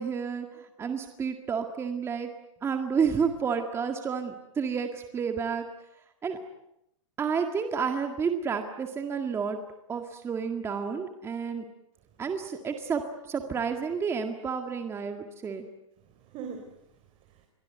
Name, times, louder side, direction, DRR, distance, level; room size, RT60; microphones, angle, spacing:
voice 1, 0.0-2.3 2.6-5.7 6.2-6.4 7.2-9.6 9.9-11.6 12.2-13.0 13.3-15.7, right 6 dB, 15° right, 6 dB, 1.9 m, -30 dB
voice 2, 11.9-12.6 16.0-17.5, right 6 dB, 35° right, 5 dB, 3.9 m, -45 dB
29.0 x 23.5 x 8.1 m, 0.83 s
hypercardioid pair, 145°, 16 cm